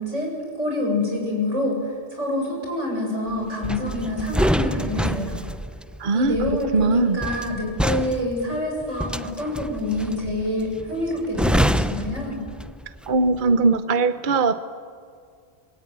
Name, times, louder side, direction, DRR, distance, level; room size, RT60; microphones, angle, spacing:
voice 1, 0.0-5.4 6.1-12.4, left 1 dB, 90° right, 0 dB, 8.0 m, -26 dB
sound 1, 3.6-13.0 13.3-13.6, equal, ahead, 0.4 m, -26 dB
voice 2, 6.0-6.4 6.7-7.2 13.1-14.6, right 3 dB, 45° right, 11 dB, 1.0 m, -20 dB
27.5 x 22.0 x 9.4 m, 2.1 s
omnidirectional pair, 1.2 m